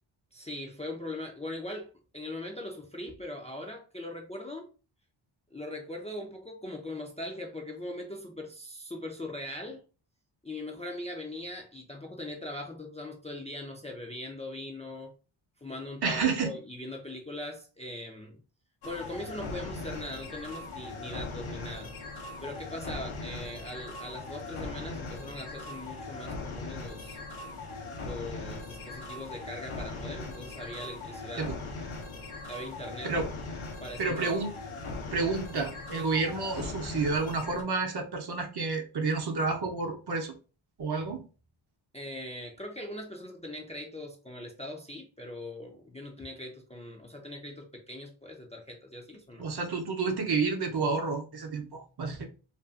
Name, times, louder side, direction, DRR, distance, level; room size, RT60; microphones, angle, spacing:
voice 1, 0.3-4.7 5.5-9.8 10.4-15.1 15.6-18.4 18.8-21.9 22.4-27.2 28.0-31.5 32.5-33.1 33.8-34.3 41.9-49.5, left 1 dB, 15° left, 0.4 m, -40 dB
voice 2, 16.0-16.5 31.4-31.6 33.0-33.3 34.0-34.5 35.1-40.3 40.8-41.2 49.4-52.3, right 4 dB, 50° right, 0.7 m, -30 dB
sound 1, 18.8-37.6, left 3 dB, 85° left, 0.8 m, -40 dB
2.5 x 2.4 x 2.3 m
cardioid pair, 70°, 49 cm